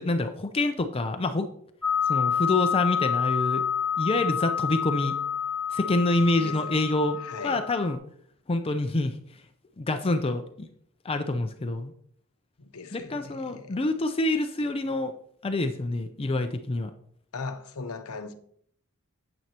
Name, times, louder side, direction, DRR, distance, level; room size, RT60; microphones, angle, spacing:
voice 1, 0.0-1.5 2.1-3.6 4.0-5.2 5.7-7.2 7.4-8.0 8.5-9.4 9.8-10.7 11.0-11.9 12.9-15.1 15.4-16.9, left 2 dB, 25° left, 0.5 m, -27 dB
sound 1, 1.8-7.9, left 7 dB, 5° left, 0.9 m, -28 dB
voice 2, 6.3-6.8 7.2-7.6 12.6-13.8 17.3-18.3, left 4 dB, 80° left, 0.8 m, -39 dB
9.1 x 7.9 x 2.9 m
head